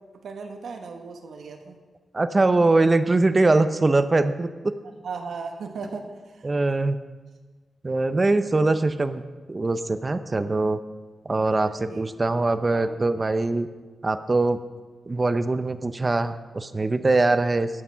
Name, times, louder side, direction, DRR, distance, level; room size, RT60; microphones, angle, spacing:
voice 1, 0.1-1.8 5.0-6.5 11.5-13.1, right 4 dB, 80° right, 4 dB, 1.4 m, -38 dB
voice 2, 2.1-4.7 6.4-7.0 7.8-9.2 9.5-10.8 11.2-13.7 14.0-14.6 15.1-17.7, right 2 dB, 25° right, 11 dB, 0.6 m, -22 dB
12.0 x 8.6 x 5.7 m, 1.3 s
wide cardioid pair, 115°, 0 cm